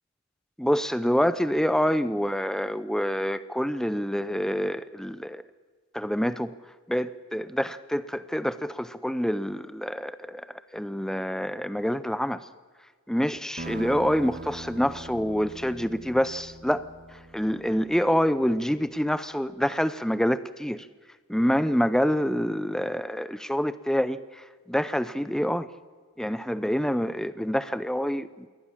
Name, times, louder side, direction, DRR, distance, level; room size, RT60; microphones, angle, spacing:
voice 1, 0.6-5.4 5.9-6.5 6.9-10.5 10.7-12.5 13.1-16.9 17.1-20.9 21.3-25.7 26.2-28.5, equal, ahead, 15 dB, 0.5 m, -27 dB
sound 1, 13.6-18.7, right 2 dB, 40° right, 1.4 m, -42 dB
22.5 x 18.0 x 7.3 m, 1.5 s
head